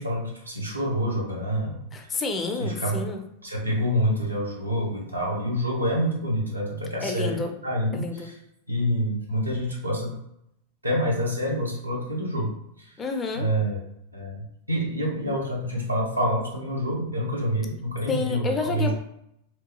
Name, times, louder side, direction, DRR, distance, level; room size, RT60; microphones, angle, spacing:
voice 1, 0.0-2.2 2.6-3.1 3.4-8.3 8.7-10.1 10.8-12.5 12.8-13.0 13.3-13.8 14.1-18.9, equal, 85° right, -4 dB, 0.9 m, -27 dB
voice 2, 1.9-3.2 7.0-7.5 7.9-8.3 13.0-13.5 18.1-18.9, left 4 dB, 20° left, 4 dB, 0.4 m, -29 dB
3.0 x 2.2 x 2.8 m, 0.76 s
figure-of-eight pair, 90°, 0 cm